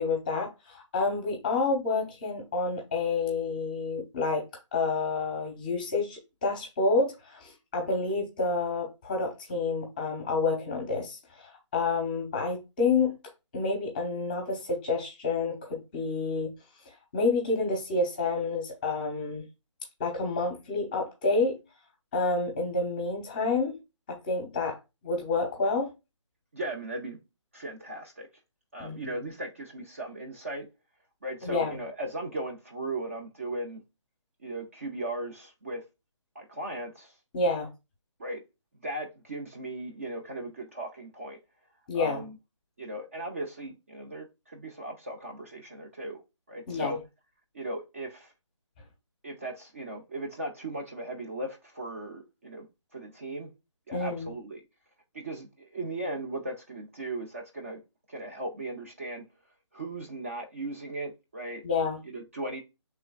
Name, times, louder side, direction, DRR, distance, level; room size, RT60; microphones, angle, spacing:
voice 1, 0.0-4.4 4.7-13.2 13.5-16.5 17.1-19.4 20.0-21.5 22.1-23.8 24.1-24.8 25.0-25.9 28.8-29.1 31.4-31.8 37.3-37.7 41.9-42.2 46.7-47.0 53.9-54.3 61.6-62.0, left 3 dB, 15° left, 0.8 m, -29 dB
voice 2, 26.5-27.2 27.5-28.3 28.7-30.7 31.2-33.8 34.4-35.8 36.3-37.2 38.2-38.4 38.8-41.4 41.9-42.4 42.8-46.2 46.5-47.0 47.5-48.3 49.2-52.7 52.9-53.5 53.9-54.6 55.1-57.8 58.1-59.2 59.7-61.6 62.0-62.6, right 2 dB, 25° right, 0.4 m, -37 dB
6.8 x 3.2 x 2.2 m
hypercardioid pair, 170°, 16 cm